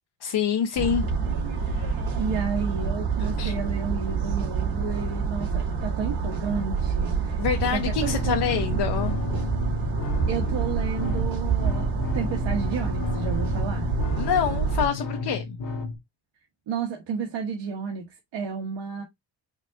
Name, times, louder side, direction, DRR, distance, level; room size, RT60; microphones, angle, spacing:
voice 1, 0.2-1.1 1.7-1.9 3.4-3.5 7.4-9.2 14.2-15.6, left 8 dB, 65° left, 0.8 m, -26 dB
sound 1, 0.8-14.9, right 5 dB, 55° right, 2.7 m, -27 dB
voice 2, 2.2-7.4 7.7-8.8 10.3-13.9 16.7-19.0, right 6 dB, 80° right, 1.2 m, -32 dB
sound 2, 8.0-16.0, left 4 dB, 45° left, 1.1 m, -33 dB
5.2 x 2.5 x 3.7 m
wide cardioid pair, 155°, 43 cm